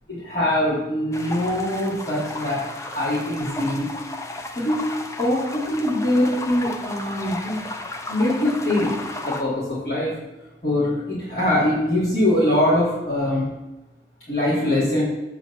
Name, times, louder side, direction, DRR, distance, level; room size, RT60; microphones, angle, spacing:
voice 1, 0.1-3.9 4.5-4.9 5.2-7.6 8.1-10.1 10.6-13.5 14.3-15.0, left 1 dB, 45° left, -12 dB, 3.0 m, -23 dB
sound 1, 1.1-9.4, left 2 dB, 15° left, 0.6 m, -34 dB
8.9 x 3.9 x 6.9 m, 1.0 s
head